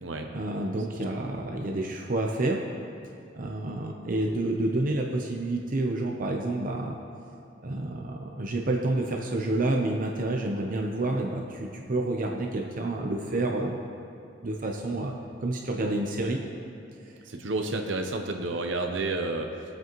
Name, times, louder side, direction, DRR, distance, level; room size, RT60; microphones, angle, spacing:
voice 1, 0.3-2.7 3.3-7.0 7.6-13.8 14.4-15.1 15.4-16.4 17.1-17.2, right 2 dB, 50° right, 1 dB, 0.8 m, -29 dB
voice 2, 17.3-19.8, right 2 dB, 80° right, 3 dB, 0.8 m, -31 dB
20.0 x 7.7 x 3.1 m, 2.7 s
head